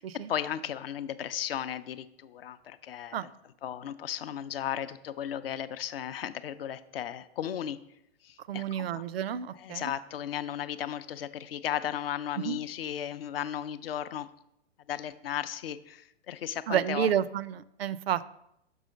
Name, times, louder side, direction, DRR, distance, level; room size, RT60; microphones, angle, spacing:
voice 1, 0.3-3.2 3.6-7.8 8.2-9.0 9.6-14.3 14.9-17.1, left 10 dB, 55° left, 13 dB, 0.5 m, -35 dB
voice 2, 8.5-9.9 12.4-12.6 16.7-18.2, right 9 dB, 60° right, 17 dB, 0.4 m, -30 dB
6.0 x 5.5 x 5.1 m, 0.80 s
figure-of-eight pair, 110°, 34 cm